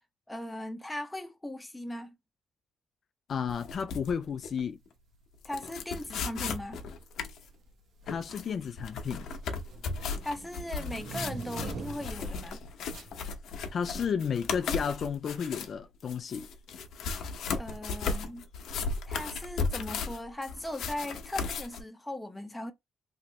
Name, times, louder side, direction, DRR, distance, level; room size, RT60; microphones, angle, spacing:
voice 1, 0.3-2.1 5.4-6.8 10.2-12.6 17.6-18.4 19.1-22.7, left 1 dB, 10° left, 0.9 m, -38 dB
sound 1, 3.3-4.6 4.9-5.0 5.4-7.5 8.1-15.7 16.0-21.8, left 4 dB, 70° left, 0.8 m, -36 dB
voice 2, 3.3-4.8 8.1-9.3 13.7-16.5, left 7 dB, 50° left, 0.4 m, -32 dB
sound 2, 6.1-6.3 7.2-7.7 8.0-12.3 12.9-13.2, right 5 dB, 70° right, 1.0 m, -43 dB
3.2 x 3.0 x 2.8 m
cardioid pair, 90°, 0 cm